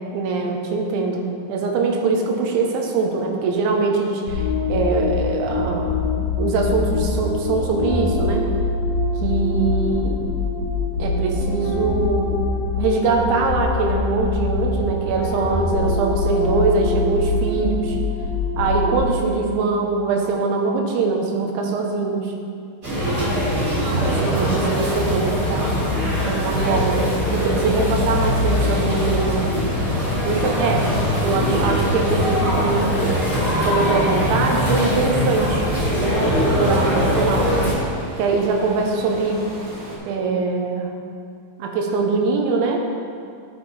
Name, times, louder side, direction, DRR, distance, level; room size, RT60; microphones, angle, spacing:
voice 1, 0.1-1.2 1.5-6.1 6.4-8.4 9.2-10.2 11.0-12.4 12.8-18.0 18.6-22.3 23.9-25.7 26.3-29.6 30.2-33.2 33.5-35.6 36.0-37.5 38.2-39.4 40.1-40.9 41.6-42.8, right 4 dB, 90° right, 2 dB, 3.2 m, -22 dB
sound 1, 4.3-19.4, left 3 dB, 75° left, 2.1 m, -24 dB
sound 2, 22.8-37.7, equal, 35° right, 1.4 m, -21 dB
sound 3, 29.9-40.0, right 1 dB, 60° right, 2.0 m, -37 dB
10.5 x 6.2 x 3.2 m, 2.4 s
omnidirectional pair, 5.2 m